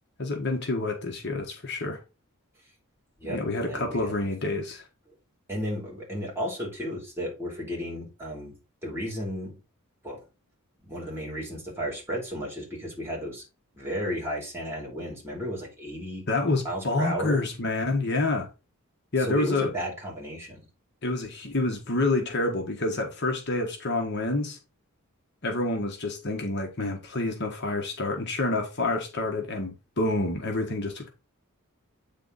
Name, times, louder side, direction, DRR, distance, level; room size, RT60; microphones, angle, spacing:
voice 1, 0.2-2.0 3.2-4.8 16.3-18.5 19.1-19.7 21.0-24.6 25.4-31.1, left 2 dB, 50° left, 1.4 m, -28 dB
voice 2, 3.2-4.1 5.5-8.5 8.8-9.5 10.0-10.2 10.8-13.4 13.7-16.2 16.6-17.4 19.2-20.7, equal, 10° right, 3.2 m, -33 dB
8.9 x 3.8 x 4.0 m
head